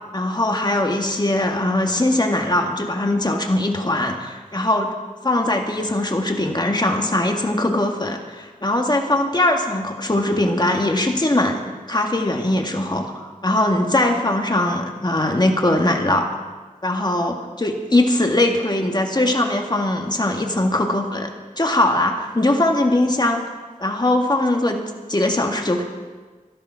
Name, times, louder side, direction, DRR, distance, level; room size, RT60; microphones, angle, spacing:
voice 1, 0.1-4.9 5.2-11.6 11.9-16.3 16.8-21.3 21.6-23.4 23.8-24.8 25.1-25.8, left 1 dB, 30° left, 2 dB, 1.9 m, -21 dB
14.0 x 12.0 x 6.0 m, 1.4 s
cardioid pair, 45°, 15 cm